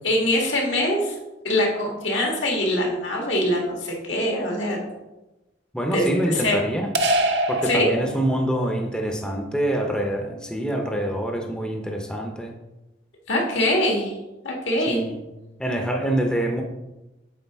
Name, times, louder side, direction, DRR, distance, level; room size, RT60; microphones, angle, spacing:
voice 1, 0.0-1.2 1.4-4.8 5.9-6.6 7.6-7.9 13.3-14.1 14.4-15.1, left 1 dB, 80° left, 0 dB, 1.6 m, -23 dB
voice 2, 5.7-6.9 7.5-12.5 14.9-15.2 15.6-16.6, right 1 dB, 5° left, 2 dB, 0.6 m, -25 dB
sound 1, 6.9-8.6, right 1 dB, 65° right, 0.7 m, -24 dB
8.2 x 3.8 x 3.5 m, 1.0 s
head